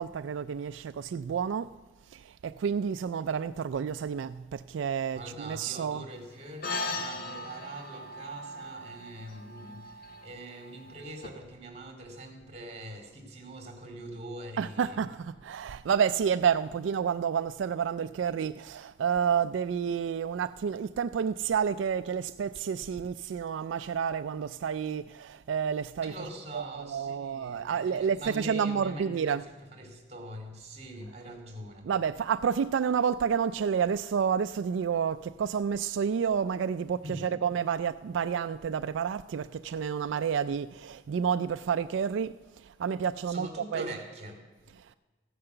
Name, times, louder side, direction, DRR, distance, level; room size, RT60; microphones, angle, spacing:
voice 1, 0.0-1.7 2.1-6.0 14.6-26.1 26.5-29.4 31.9-43.9, right 7 dB, 90° right, 0.3 m, -30 dB
voice 2, 5.1-15.0 26.0-31.9 37.0-37.4 43.2-44.4, right 1 dB, 35° right, 2.6 m, -43 dB
sound 1, 6.6-11.3, left 2 dB, 55° left, 1.1 m, -39 dB
15.0 x 9.7 x 6.7 m
head